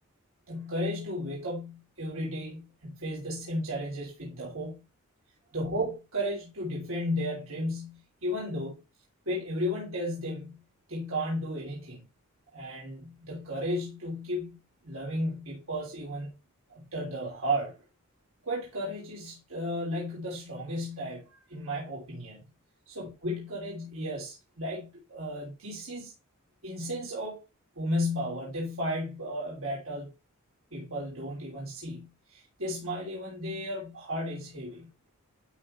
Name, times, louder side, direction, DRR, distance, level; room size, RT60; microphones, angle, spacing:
voice 1, 0.5-4.8 5.5-8.8 9.3-10.6 10.9-12.0 12.5-14.6 14.8-16.3 16.7-17.8 18.4-22.4 22.9-26.1 26.6-27.4 27.8-30.1 30.7-34.9, equal, 70° right, 3.0 m, -34 dB
11.0 x 3.9 x 4.2 m
head